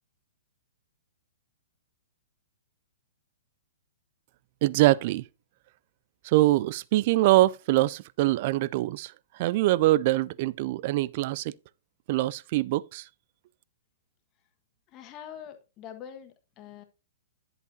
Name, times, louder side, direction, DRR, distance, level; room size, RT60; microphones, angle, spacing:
voice 1, 4.6-5.3 6.2-11.5 12.1-13.1, right 17 dB, 45° right, 0.4 m, -24 dB
voice 2, 14.9-16.8, left 9 dB, 30° left, 1.4 m, -44 dB
10.5 x 8.1 x 2.7 m
figure-of-eight pair, 115°, 0 cm